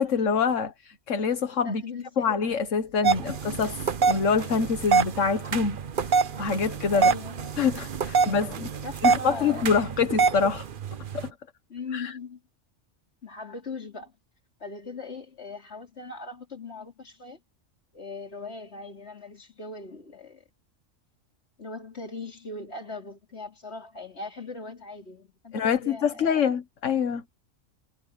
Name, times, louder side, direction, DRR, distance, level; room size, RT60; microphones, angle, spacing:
voice 1, 0.0-1.8 2.2-5.8 6.1-7.1 7.6-8.7 9.0-10.6 11.1-11.3 11.9-12.1 25.5-27.2, left 5 dB, 70° left, 1.7 m, -26 dB
voice 2, 1.6-2.5 3.3-3.4 6.9-7.5 8.2-9.9 10.3-10.5 11.7-12.4 13.2-14.1 14.6-17.4 17.9-20.4 21.6-26.4, left 3 dB, 55° left, 3.7 m, -40 dB
sound 1, 3.0-11.3, right 5 dB, 45° right, 0.9 m, -26 dB
omnidirectional pair, 1.3 m